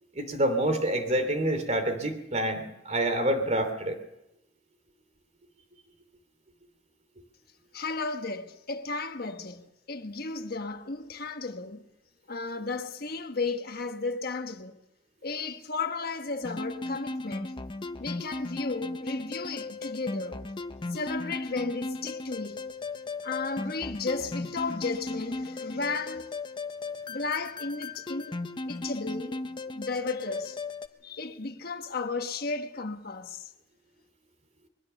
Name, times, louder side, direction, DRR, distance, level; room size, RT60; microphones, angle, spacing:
voice 1, 0.1-4.0, right 1 dB, 40° right, 2.9 m, -27 dB
voice 2, 7.7-11.8 12.3-14.8 15.2-17.5 18.0-20.4 20.9-22.6 23.2-26.3 27.1-28.4 28.7-30.6 31.0-33.5, left 3 dB, 55° left, 1.3 m, -34 dB
sound 1, 16.4-30.9, left 2 dB, 25° left, 0.8 m, -36 dB
22.0 x 17.0 x 7.0 m
head